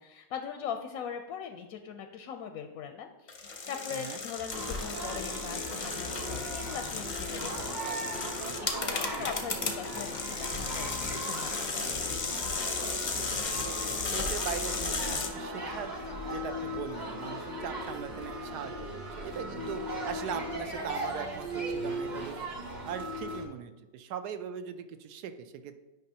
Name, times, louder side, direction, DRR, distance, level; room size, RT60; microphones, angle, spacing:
voice 1, 0.0-3.3 3.7-12.0, left 7 dB, 70° left, 5 dB, 0.9 m, -41 dB
sound 1, 3.3-15.3, left 4 dB, 45° left, 0.6 m, -34 dB
voice 2, 3.9-4.2 9.5-9.7 13.0-13.8 14.1-15.9 16.2-22.5 22.8-25.8, right 8 dB, 75° right, 10 dB, 1.1 m, -40 dB
sound 2, 4.5-23.4, right 1 dB, 30° right, 1.1 m, -38 dB
9.2 x 5.3 x 2.8 m, 1.2 s
omnidirectional pair, 1.8 m